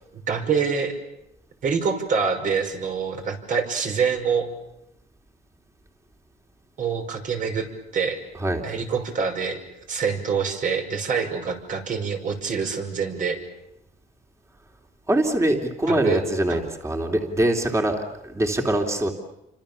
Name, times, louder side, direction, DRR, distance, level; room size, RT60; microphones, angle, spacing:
voice 1, 0.1-1.0 1.6-4.5 6.8-7.7 7.9-8.2 8.6-9.6 9.9-13.4 15.9-16.2 16.5-16.6, right 6 dB, 50° right, 4 dB, 5.7 m, -25 dB
voice 2, 15.1-19.1, right 1 dB, 15° right, 3 dB, 3.2 m, -23 dB
29.5 x 25.5 x 7.1 m, 0.87 s
cardioid pair, 110°, 17 cm